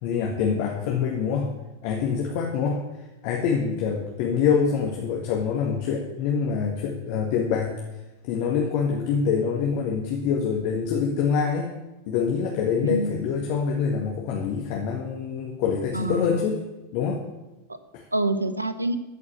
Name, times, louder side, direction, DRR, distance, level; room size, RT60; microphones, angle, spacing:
voice 1, 0.0-1.5 1.8-2.8 3.2-7.7 8.2-11.7 12.1-16.6 16.9-17.2 17.9-18.0, left 6 dB, 45° left, 0 dB, 1.9 m, -25 dB
voice 2, 12.8-13.2 15.9-16.5 17.7-17.8 18.1-19.0, right 2 dB, 80° right, 12 dB, 1.0 m, -27 dB
14.0 x 6.0 x 9.6 m, 1.0 s
figure-of-eight pair, 90°, 0 cm